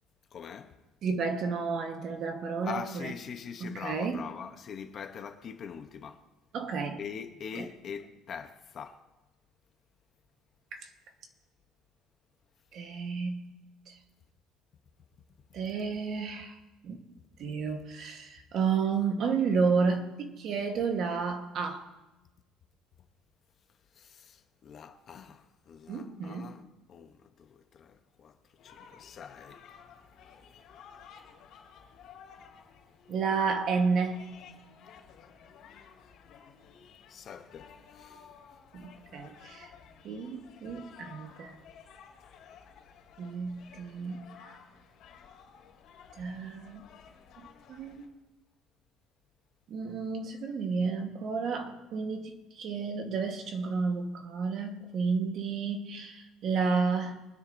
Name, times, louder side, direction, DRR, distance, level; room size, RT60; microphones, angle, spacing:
voice 1, 0.3-0.8 2.6-6.2 7.0-9.0 23.9-29.7 37.1-38.3, left 7 dB, 35° left, 0.8 m, -43 dB
voice 2, 1.0-3.1 3.6-4.2 6.5-7.0 7.6-7.7 10.7-10.9 12.7-13.6 13.9-14.0 15.5-16.5 16.8-17.0 17.4-21.9 25.9-26.6 33.1-34.3 38.7-39.7 40.0-41.6 43.2-44.4 46.1-46.9 47.4-48.1 49.7-57.2, right 5 dB, 45° right, 1.2 m, -31 dB
sound 1, 28.6-48.1, left 7 dB, 60° left, 2.8 m, -54 dB
24.0 x 9.8 x 2.6 m
cardioid pair, 165°, 0 cm